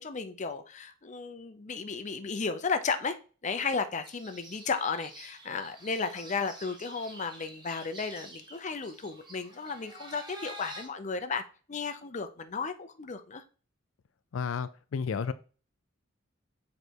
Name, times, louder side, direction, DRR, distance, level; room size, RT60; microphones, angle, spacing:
voice 1, 0.0-3.2 3.4-11.4 11.7-13.4, left 4 dB, 40° left, 8 dB, 0.6 m, -34 dB
sound 1, 4.0-10.9, right 1 dB, 25° right, 1.3 m, -48 dB
voice 2, 14.3-15.3, left 6 dB, 90° left, 13 dB, 0.4 m, -32 dB
6.8 x 3.2 x 4.6 m, 0.38 s
head